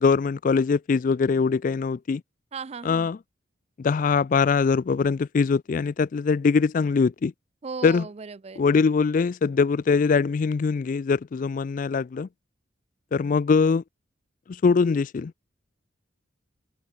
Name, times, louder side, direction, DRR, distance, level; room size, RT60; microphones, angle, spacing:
voice 1, 0.0-2.2 2.8-3.2 3.8-7.3 7.8-8.1 8.6-12.3 13.1-13.8 14.5-15.3, left 5 dB, 40° left, 0.3 m, -22 dB
voice 2, 2.5-3.1 7.6-8.6, right 5 dB, 30° right, 0.4 m, -36 dB
open air
head